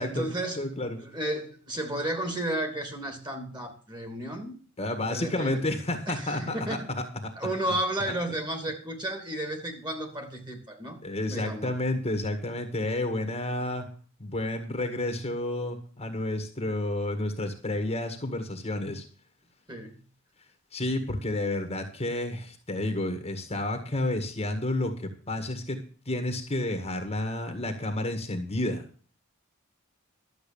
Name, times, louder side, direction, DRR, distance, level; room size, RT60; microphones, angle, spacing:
voice 1, 0.0-0.7 1.0-4.5 5.1-5.6 6.1-7.0 7.4-11.0 11.3-11.7 19.7-20.0, right 1 dB, 20° right, 5 dB, 2.8 m, -33 dB
voice 2, 0.6-1.0 4.8-7.0 7.7-7.8 8.1-8.2 11.0-13.9 14.2-19.0 20.7-25.8 26.1-28.8, left 1 dB, 30° left, 6 dB, 1.8 m, -30 dB
12.0 x 7.7 x 7.2 m, 0.41 s
head